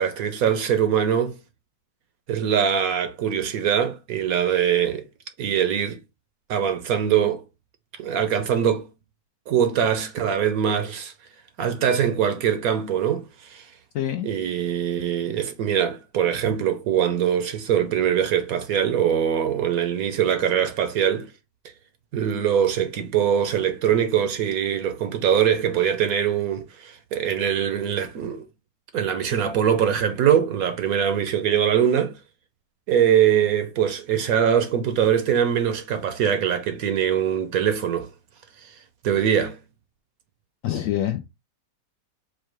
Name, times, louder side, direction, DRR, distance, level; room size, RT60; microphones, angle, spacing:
voice 1, 0.0-1.4 2.3-5.1 5.4-6.0 6.5-7.4 8.0-8.9 9.5-11.1 11.6-13.7 14.2-21.3 22.1-28.5 28.9-32.2 32.9-38.1 38.6-38.7 39.0-39.6, right 9 dB, 65° right, 1.0 m, -22 dB
voice 2, 13.9-14.3 40.6-41.2, left 12 dB, 70° left, 0.8 m, -25 dB
4.7 x 2.2 x 4.5 m
omnidirectional pair, 1.8 m